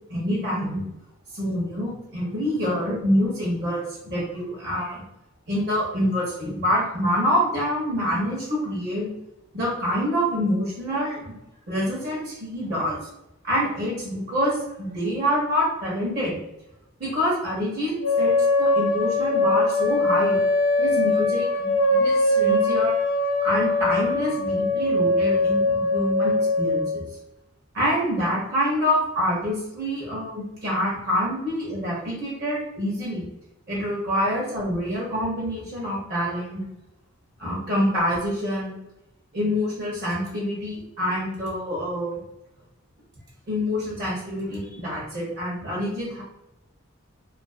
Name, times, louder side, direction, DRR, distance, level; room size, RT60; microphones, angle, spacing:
voice 1, 0.1-0.8 1.3-5.0 5.5-9.1 9.5-11.4 11.7-13.0 13.4-16.4 17.0-18.3 18.6-20.4 20.8-23.0 23.4-27.0 27.7-33.3 33.7-36.6 37.4-38.8 39.3-42.2 43.5-46.2, equal, 50° right, -5 dB, 0.7 m, -26 dB
sound 1, 18.0-27.0, left 2 dB, 80° left, 0.6 m, -22 dB
2.4 x 2.3 x 2.4 m, 0.89 s
head